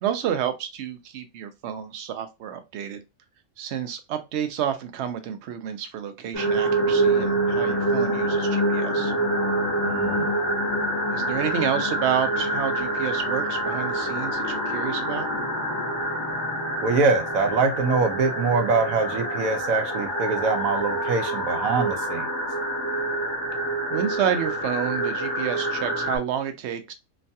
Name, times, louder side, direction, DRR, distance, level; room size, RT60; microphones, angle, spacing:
voice 1, 0.0-3.0 3.6-9.1 11.1-15.3 23.9-26.9, right 9 dB, 65° right, 0.8 m, -29 dB
sound 1, 6.3-26.2, right 1 dB, 15° right, 1.0 m, -26 dB
voice 2, 9.8-10.3 16.8-22.3, right 4 dB, 80° right, 1.1 m, -24 dB
3.1 x 2.2 x 2.6 m
omnidirectional pair, 1.4 m